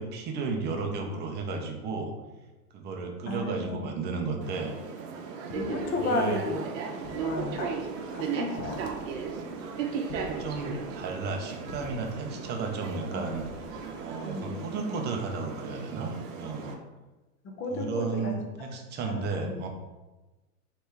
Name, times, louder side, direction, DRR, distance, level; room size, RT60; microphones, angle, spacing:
voice 1, 0.0-2.1 2.7-4.7 6.1-6.4 9.8-13.4 14.0-16.8 17.7-19.7, right 4 dB, 20° right, 2 dB, 0.6 m, -33 dB
voice 2, 3.3-3.9 5.5-6.6 7.2-7.8 8.1-8.8 13.1-13.3 14.2-14.6 17.4-18.4 19.0-19.6, left 2 dB, 25° left, 2 dB, 0.8 m, -33 dB
sound 1, 4.4-16.7, right 5 dB, 55° right, 0.8 m, -36 dB
sound 2, 5.5-15.0, left 2 dB, 65° left, 0.8 m, -49 dB
3.3 x 3.3 x 4.5 m, 1.1 s
hypercardioid pair, 115°, 47 cm